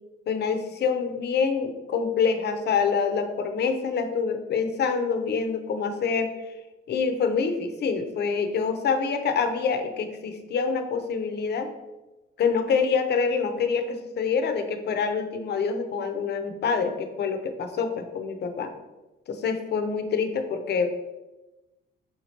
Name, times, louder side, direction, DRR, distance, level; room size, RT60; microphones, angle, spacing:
voice 1, 0.3-6.5 6.9-11.7 12.4-18.7 19.3-21.1, left 5 dB, 55° left, 7 dB, 0.6 m, -26 dB
3.6 x 2.8 x 4.3 m, 1.1 s
cardioid pair, 90°, 20 cm